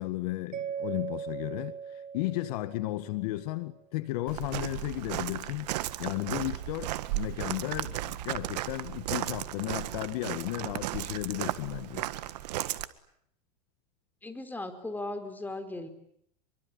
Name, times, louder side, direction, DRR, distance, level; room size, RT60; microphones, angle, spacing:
voice 1, 0.0-12.1, left 17 dB, 65° left, 1.8 m, -34 dB
Mallet percussion, 0.5-3.5, right 7 dB, 40° right, 1.5 m, -39 dB
Walk footsteps, 4.3-12.9, right 15 dB, 75° right, 1.7 m, -35 dB
voice 2, 14.2-15.9, left 2 dB, 10° left, 4.5 m, -37 dB
25.5 x 23.5 x 9.8 m
supercardioid pair, 115°, 21 cm